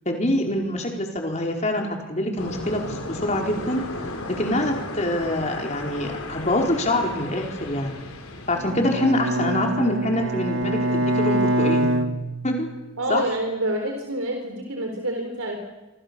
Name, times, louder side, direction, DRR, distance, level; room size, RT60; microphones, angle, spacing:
voice 1, 0.0-3.8 4.4-8.0 8.5-12.0 12.4-12.7 13.1-13.2, left 1 dB, 35° left, 2 dB, 4.7 m, -25 dB
sound 1, 2.4-9.3, left 2 dB, 90° left, 4.8 m, -35 dB
Bowed string instrument, 8.5-12.9, right 1 dB, 65° right, 1.7 m, -25 dB
voice 2, 13.0-15.6, right 1 dB, 85° right, 3 dB, 4.0 m, -27 dB
27.5 x 26.5 x 7.1 m, 1.1 s
head